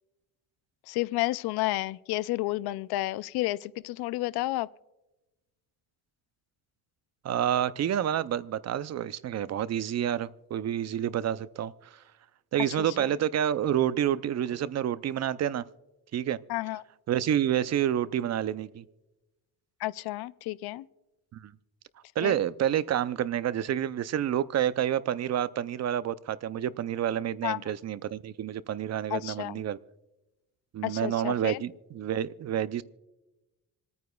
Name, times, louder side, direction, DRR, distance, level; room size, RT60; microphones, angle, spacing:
voice 1, 0.9-4.7 12.8-13.1 16.5-16.8 19.8-20.8 22.2-22.4 27.4-27.6 29.1-29.6 30.8-31.6, left 18 dB, 85° left, 17 dB, 0.5 m, -31 dB
voice 2, 7.2-12.0 12.5-15.6 16.1-16.4 17.1-18.8 21.3-21.5 22.2-29.8 30.7-32.8, right 10 dB, 45° right, 17 dB, 0.5 m, -29 dB
27.0 x 9.4 x 2.3 m, 1.0 s
cardioid pair, 100°, 37 cm